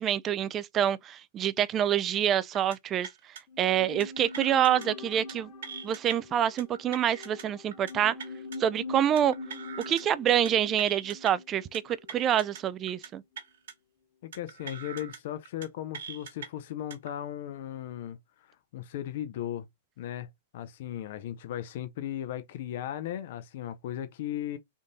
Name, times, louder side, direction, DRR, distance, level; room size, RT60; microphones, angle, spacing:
voice 1, 0.0-3.1 3.6-5.5 5.8-8.2 8.6-9.3 9.9-13.2, right 10 dB, 25° right, 0.3 m, -26 dB
sound 1, 2.6-2.8 3.0-3.4 4.0-4.9 5.1-5.3 5.6-6.1 6.6-7.4 7.7-7.9 8.2-8.6 9.2-10.0 10.3-10.5 10.8-11.3 11.7-12.6 12.9-13.1 13.4-13.7 14.3-15.2 15.5-15.7 15.9-16.5 16.9-17.1, right 7 dB, 70° right, 1.3 m, -42 dB
sound 2, 3.5-12.8 13.1-13.2, left 3 dB, 40° left, 1.5 m, -44 dB
voice 2, 14.2-19.7 20.0-24.6, left 11 dB, 60° left, 0.6 m, -37 dB
3.6 x 2.6 x 3.8 m
hypercardioid pair, 125°, 0 cm